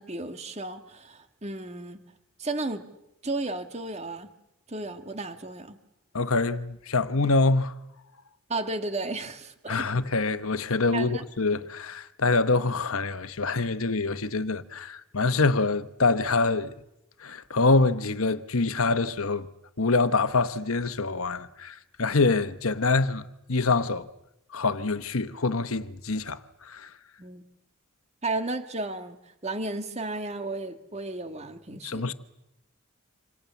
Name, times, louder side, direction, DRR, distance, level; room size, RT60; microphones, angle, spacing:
voice 1, 0.0-2.0 2.4-2.8 3.2-4.3 4.7-5.8 8.5-9.9 10.9-11.2 27.2-27.4 28.2-32.1, right 2 dB, 30° right, 2.0 m, -33 dB
voice 2, 6.1-7.7 9.7-16.7 17.2-19.5 19.8-24.1 24.5-26.9 31.8-32.1, left 3 dB, 75° left, 1.2 m, -25 dB
27.5 x 27.0 x 7.2 m
head